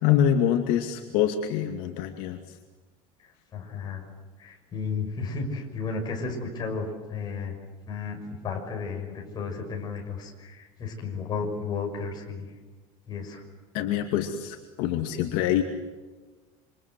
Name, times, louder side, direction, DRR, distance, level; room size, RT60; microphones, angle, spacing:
voice 1, 0.0-2.6 13.7-15.6, left 10 dB, 65° left, 3 dB, 2.4 m, -25 dB
voice 2, 3.5-4.1 4.4-7.6 7.9-8.2 8.4-12.5 13.1-13.4, left 4 dB, 25° left, 1 dB, 6.2 m, -33 dB
28.0 x 26.5 x 7.9 m, 1.3 s
cardioid pair, 170°, 16 cm